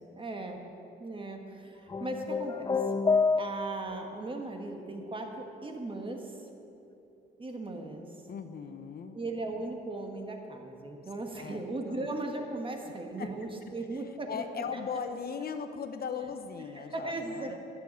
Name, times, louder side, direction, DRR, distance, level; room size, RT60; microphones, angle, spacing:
voice 1, 0.1-0.6 1.0-2.7 3.4-6.2 7.4-8.1 9.1-14.8 16.7-17.6, right 2 dB, 25° right, 3 dB, 1.6 m, -37 dB
sound 1, 1.9-4.0, left 4 dB, 20° left, 0.4 m, -28 dB
voice 2, 8.3-9.2 11.3-11.6 11.9-12.1 13.2-13.3 13.6-14.0 14.3-17.6, left 6 dB, 50° left, 8 dB, 0.8 m, -38 dB
11.0 x 7.1 x 9.1 m, 2.8 s
cardioid pair, 90°, 20 cm